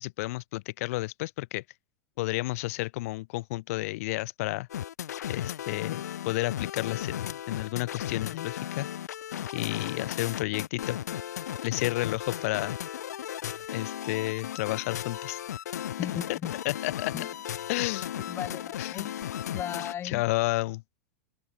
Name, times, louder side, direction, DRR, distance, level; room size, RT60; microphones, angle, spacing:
voice 1, 0.0-1.6 2.2-4.7 5.3-8.9 9.5-11.0 11.6-12.7 13.7-15.4 16.3-16.4 16.6-17.1 17.7-18.1 18.8-19.0 20.0-20.8, left 20 dB, 60° left, 2.8 m, -31 dB
sound 1, 4.7-19.9, left 10 dB, 80° left, 4.5 m, -36 dB
voice 2, 16.0-16.5 17.1-17.3 18.3-19.1 19.5-20.2, left 10 dB, 25° left, 1.3 m, -36 dB
open air
hypercardioid pair, 120°, 9 cm